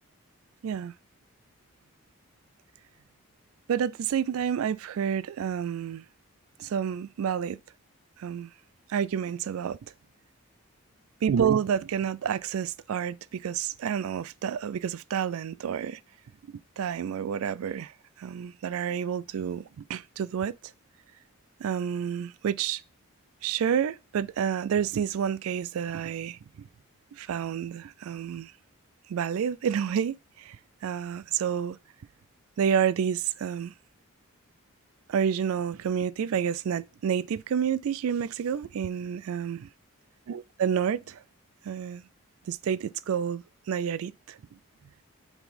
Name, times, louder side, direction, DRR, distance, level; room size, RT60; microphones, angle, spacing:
voice 1, 0.6-0.9 3.7-6.0 6.6-7.6 8.2-8.5 8.9-9.8 11.2-16.0 16.8-20.5 21.6-22.8 23.4-26.7 27.1-28.5 29.1-30.6 30.8-31.8 32.6-33.7 35.1-39.7 40.3-41.2 41.6-42.1 42.5-44.4, right 8 dB, 70° right, 0.3 m, -29 dB
7.1 x 4.0 x 5.1 m
head